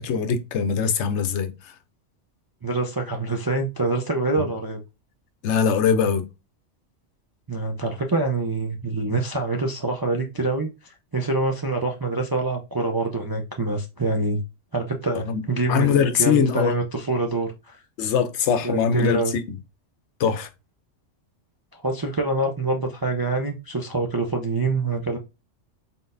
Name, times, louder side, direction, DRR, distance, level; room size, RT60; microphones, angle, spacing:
voice 1, 0.0-1.7 4.4-4.5 5.4-6.3 15.2-15.4 15.7-16.7 18.0-19.4 20.2-20.5, left 7 dB, 75° left, 0.9 m, -22 dB
voice 2, 2.6-4.8 7.5-14.4 14.7-17.8 18.6-19.3 21.7-25.2, right 3 dB, 35° right, 0.3 m, -25 dB
3.9 x 3.8 x 2.5 m
omnidirectional pair, 1.2 m